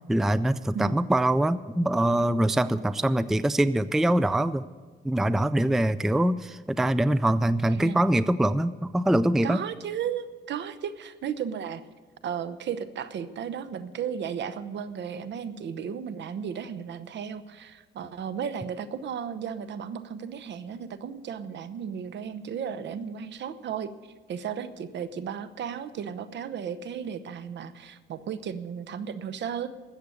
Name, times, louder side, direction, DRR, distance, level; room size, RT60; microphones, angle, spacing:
voice 1, 0.1-4.7 5.0-9.6, right 1 dB, ahead, 15 dB, 0.4 m, -23 dB
voice 2, 7.7-8.0 9.4-11.8 12.2-23.9 24.3-29.7, right 7 dB, 65° right, 13 dB, 0.9 m, -34 dB
13.0 x 8.1 x 8.4 m, 1.4 s
cardioid pair, 90°, 20 cm